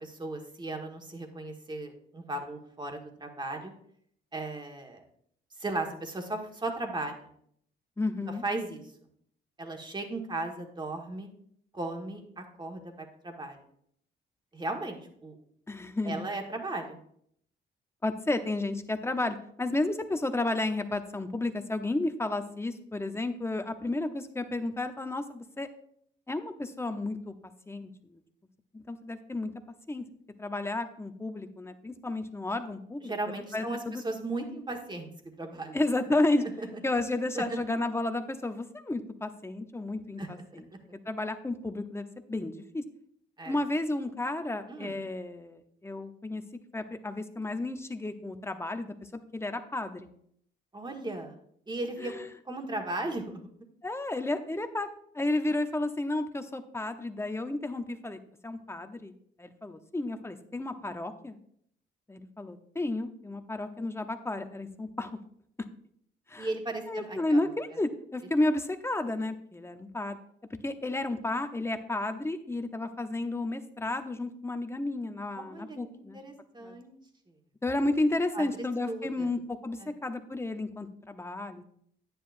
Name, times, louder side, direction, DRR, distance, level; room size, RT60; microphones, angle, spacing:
voice 1, 0.0-3.7 4.3-5.0 5.6-7.3 8.4-8.8 9.6-11.3 11.7-13.6 14.5-15.4 16.0-17.0 33.0-35.1 35.4-35.8 36.6-36.7 37.3-37.6 40.2-40.6 43.4-43.6 44.7-44.9 50.7-51.3 51.7-52.1 52.4-53.4 66.4-67.4 75.3-77.0 78.3-79.3 79.8-79.9, right 2 dB, 20° right, 3 dB, 1.6 m, -36 dB
voice 2, 8.0-8.4 15.7-16.2 18.0-25.7 26.3-27.3 27.7-28.2 28.9-29.5 29.9-30.0 30.4-33.1 33.5-34.0 35.7-36.4 36.8-40.7 41.1-42.8 43.5-46.4 46.7-50.1 52.0-52.3 53.8-54.9 55.1-59.1 59.4-61.4 62.1-65.1 66.3-66.5 66.9-70.2 70.6-76.2 76.6-76.8 77.6-81.7, left 2 dB, 15° left, 8 dB, 0.8 m, -32 dB
10.0 x 9.3 x 2.6 m, 0.68 s
cardioid pair, 90°, 20 cm